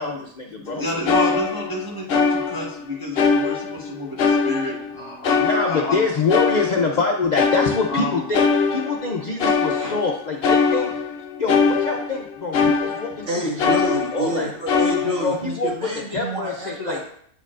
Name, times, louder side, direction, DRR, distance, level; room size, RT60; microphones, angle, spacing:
voice 1, 0.0-0.8 5.4-10.9 11.4-14.5 15.2-15.7 16.1-17.1, left 4 dB, 85° left, 0 dB, 0.4 m, -25 dB
voice 2, 0.6-2.0 2.3-6.1 6.8-6.9 7.9-8.3, left 1 dB, 15° right, -6 dB, 0.9 m, -30 dB
sound 1, 0.7-0.8 1.1-2.8 3.2-3.9 4.2-7.1 7.4-13.3 13.6-14.4 14.7-15.4, left 5 dB, 55° left, 0.7 m, -22 dB
voice 3, 13.3-17.1, equal, 60° right, -5 dB, 2.3 m, -28 dB
8.6 x 4.5 x 2.4 m, 0.63 s
omnidirectional pair, 1.6 m